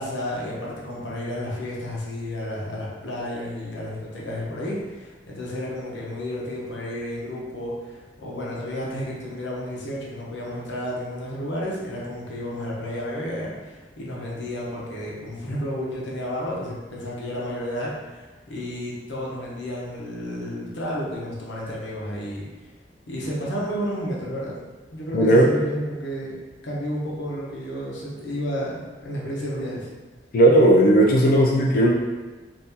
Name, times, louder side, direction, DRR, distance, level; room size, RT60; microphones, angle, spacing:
voice 1, 0.0-22.4 23.1-24.6 24.9-26.4 26.6-29.9, equal, 80° left, -5 dB, 0.8 m, -31 dB
voice 2, 25.1-25.5 30.3-31.9, right 1 dB, 50° left, -1 dB, 0.3 m, -16 dB
3.5 x 2.6 x 2.8 m, 1.3 s
head